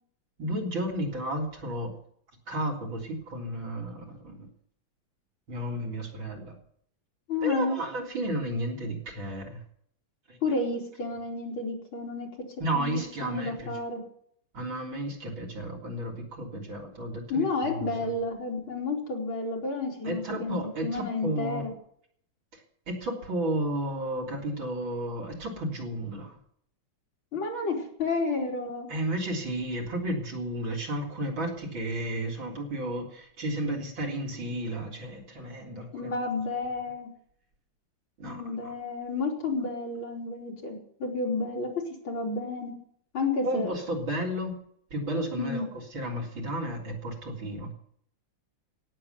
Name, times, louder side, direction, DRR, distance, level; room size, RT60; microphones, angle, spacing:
voice 1, 0.4-1.9 2.5-4.5 5.5-6.6 7.4-9.6 10.3-10.4 12.6-13.8 14.5-18.1 20.0-21.6 22.5-26.4 28.9-36.1 38.2-38.7 43.4-44.5 44.9-47.7, right 1 dB, 65° right, 0 dB, 4.4 m, -33 dB
voice 2, 7.3-7.8 10.4-12.3 12.7-12.9 13.2-14.0 17.3-21.7 27.3-28.9 35.9-37.1 38.2-41.7 42.0-42.7 43.1-43.7 45.4-45.6, left 3 dB, 70° left, 0 dB, 4.4 m, -31 dB
17.5 x 7.5 x 9.3 m, 0.64 s
omnidirectional pair, 2.3 m